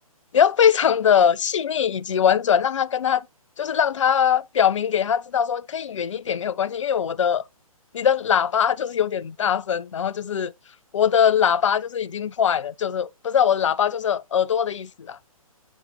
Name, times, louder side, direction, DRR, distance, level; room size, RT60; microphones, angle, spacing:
voice 1, 0.3-3.2 3.6-7.4 7.9-10.5 10.9-15.2, left 8 dB, 55° left, 0.4 m, -21 dB
7.9 x 5.1 x 2.6 m
figure-of-eight pair, 130°, 19 cm